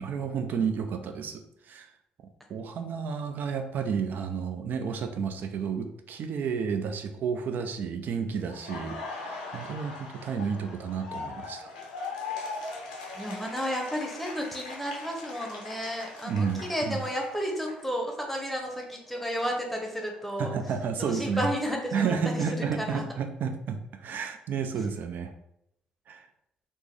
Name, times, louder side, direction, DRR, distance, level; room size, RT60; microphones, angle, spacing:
voice 1, 0.0-1.9 2.5-11.7 16.2-17.0 20.4-21.5 21.9-25.3 26.1-26.2, right 6 dB, 55° right, 7 dB, 0.4 m, -31 dB
Laughter, 8.5-18.3 18.6-20.7, left 3 dB, 85° left, 0.5 m, -41 dB
voice 2, 13.1-20.5 21.1-23.0, equal, 5° left, 1 dB, 0.9 m, -32 dB
3.4 x 2.0 x 3.2 m, 0.77 s
hypercardioid pair, 50°, 4 cm